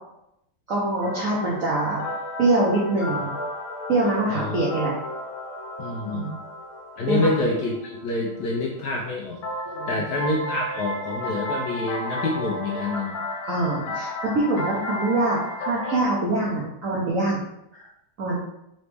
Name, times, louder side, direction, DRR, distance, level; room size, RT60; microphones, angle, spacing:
voice 1, 0.7-2.1 2.4-3.3 3.9-5.0 6.1-6.3 7.1-7.3 9.7-10.0 13.4-17.4 17.7-17.9 18.2-18.4, right 2 dB, 65° right, -5 dB, 0.8 m, -24 dB
sound 1, 1.0-8.5 9.4-16.0, left 1 dB, 85° left, 1.6 m, -33 dB
voice 2, 4.3-4.6 5.8-6.3 7.0-9.4 9.9-13.2, left 2 dB, 70° left, -2 dB, 1.0 m, -27 dB
4.0 x 3.2 x 3.3 m, 0.82 s
omnidirectional pair, 2.3 m